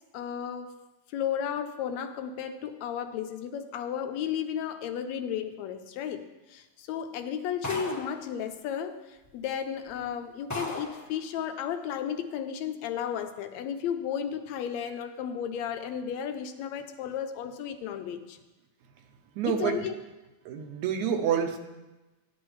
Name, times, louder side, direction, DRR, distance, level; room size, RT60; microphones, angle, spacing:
voice 1, 0.1-0.7 1.1-6.3 6.5-9.0 9.3-18.4 19.4-19.9, left 8 dB, 80° left, 7 dB, 1.8 m, -33 dB
sound 1, 7.6-8.2 9.2-9.3 9.9-10.0 10.5-11.0, left 1 dB, 15° left, 0.5 m, -35 dB
voice 2, 19.4-19.8 20.5-21.6, right 8 dB, 85° right, 5 dB, 2.2 m, -28 dB
13.0 x 10.5 x 3.1 m, 1.1 s
omnidirectional pair, 3.3 m